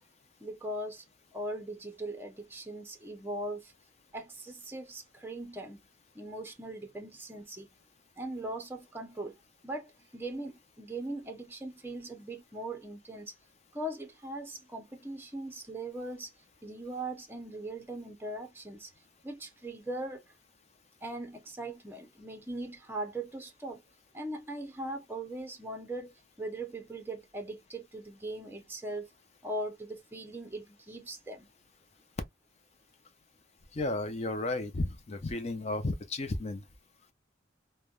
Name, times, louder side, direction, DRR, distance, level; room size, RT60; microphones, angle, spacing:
voice 1, 0.4-1.0 1.3-3.7 4.1-5.8 6.1-7.7 8.2-9.4 9.6-13.3 13.7-16.3 16.6-18.9 19.2-20.2 21.0-23.8 24.1-29.1 29.4-31.5, right 1 dB, 10° right, 0.7 m, -40 dB
voice 2, 33.7-36.6, left 2 dB, 35° left, 0.6 m, -33 dB
3.3 x 2.2 x 2.3 m
head